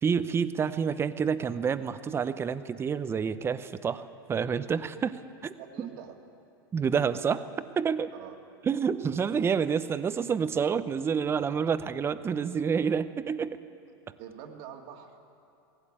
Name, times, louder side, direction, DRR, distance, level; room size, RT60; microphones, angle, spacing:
voice 1, 0.0-5.9 6.7-7.4 7.8-8.1 8.6-13.6, right 6 dB, 20° right, 13 dB, 0.7 m, -28 dB
voice 2, 5.6-6.2 8.1-8.4 14.2-15.2, right 8 dB, 55° right, 4 dB, 2.3 m, -45 dB
18.0 x 16.5 x 8.8 m, 2.7 s
hypercardioid pair, 120°, 12 cm